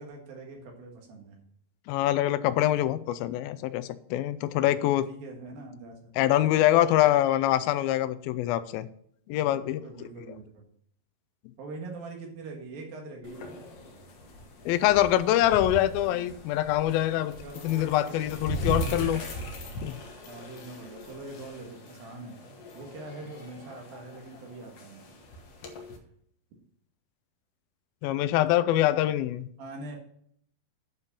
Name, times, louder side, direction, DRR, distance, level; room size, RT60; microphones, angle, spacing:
voice 1, 0.0-1.4 4.5-4.8 5.1-6.1 9.5-10.7 11.6-13.6 17.3-19.8 20.3-22.4 22.7-25.0 29.6-30.0, right 2 dB, 75° right, 1 dB, 3.4 m, -43 dB
voice 2, 1.9-5.1 6.2-8.9 9.3-9.8 14.7-17.4 17.6-19.2 19.8-19.9 28.0-29.5, left 13 dB, 85° left, 14 dB, 2.4 m, -24 dB
sound 1, 13.2-26.0, equal, 60° left, 1.7 m, -39 dB
9.7 x 5.4 x 5.3 m, 0.66 s
omnidirectional pair, 4.2 m